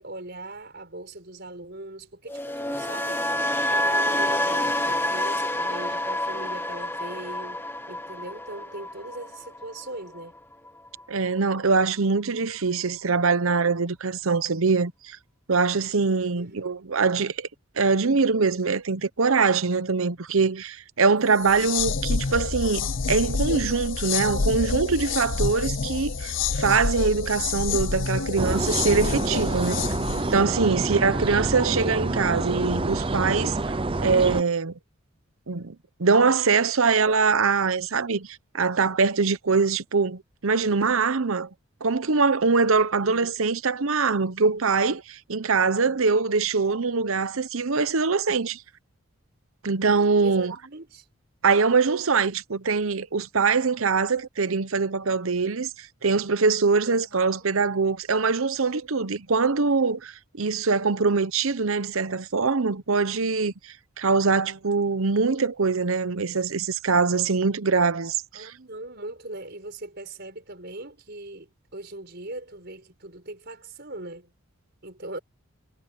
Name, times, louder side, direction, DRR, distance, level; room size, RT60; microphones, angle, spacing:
voice 1, 0.0-3.3 3.7-10.4 16.4-16.6 21.6-21.8 30.7-31.2 32.7-32.8 42.7-43.4 50.2-51.0 56.9-57.5 68.3-74.3 74.8-75.2, right 2 dB, 50° right, 5.4 m, -40 dB
sound 1, 2.3-10.4 10.7-11.0, left 1 dB, 10° left, 0.9 m, -28 dB
voice 2, 11.1-15.2 15.5-17.5 17.8-29.8 30.3-33.7 34.0-34.7 35.5-41.5 41.8-48.6 49.6-50.6 51.4-68.5, right 4 dB, 70° right, 0.9 m, -23 dB
sound 2, 21.4-30.4, left 5 dB, 55° left, 0.7 m, -28 dB
sound 3, 28.4-34.4, right 2 dB, 25° right, 0.6 m, -27 dB
head